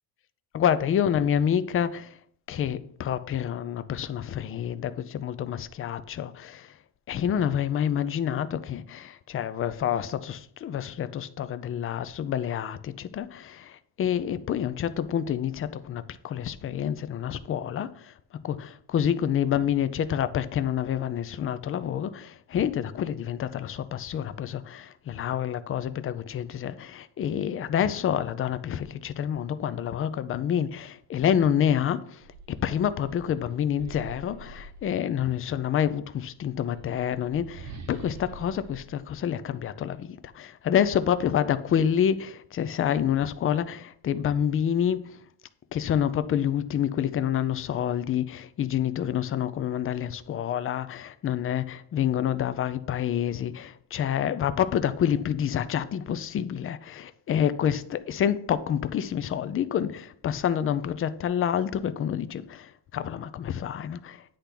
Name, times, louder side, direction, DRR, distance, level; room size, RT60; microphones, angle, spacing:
voice 1, 0.5-2.2 2.5-6.8 7.1-18.1 18.4-45.2 45.7-64.2, left 9 dB, 30° left, 0.5 m, -28 dB
sound 1, 32.1-35.4 36.4-40.0, right 4 dB, 40° right, 1.0 m, -46 dB
10.0 x 3.4 x 5.8 m
cardioid pair, 135°, 43 cm